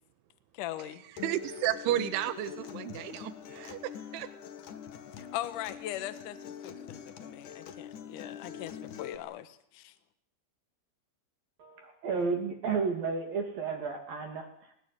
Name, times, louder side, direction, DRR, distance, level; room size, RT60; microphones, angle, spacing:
voice 1, 0.5-1.0 5.2-9.9, left 13 dB, 70° left, 12 dB, 2.0 m, -40 dB
voice 2, 1.1-4.3, right 13 dB, 75° right, 12 dB, 3.6 m, -33 dB
Acoustic guitar, 1.2-9.2, left 8 dB, 55° left, 2.4 m, -44 dB
voice 3, 11.6-14.7, right 5 dB, 50° right, 4 dB, 3.9 m, -32 dB
21.5 x 20.0 x 9.5 m, 0.68 s
omnidirectional pair, 5.8 m